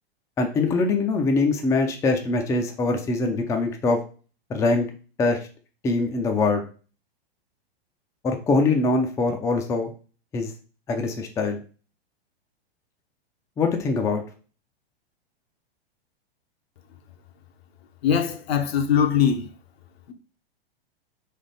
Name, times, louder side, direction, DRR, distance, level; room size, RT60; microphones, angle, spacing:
voice 1, 0.4-4.0 4.5-4.9 5.2-5.4 5.8-6.6 8.2-9.9 10.3-10.5 10.9-11.6 13.6-14.2, left 3 dB, 10° left, 0.4 m, -23 dB
voice 2, 18.0-19.5, left 8 dB, 70° left, 0.9 m, -21 dB
3.4 x 3.3 x 4.0 m
hypercardioid pair, 120°, 32 cm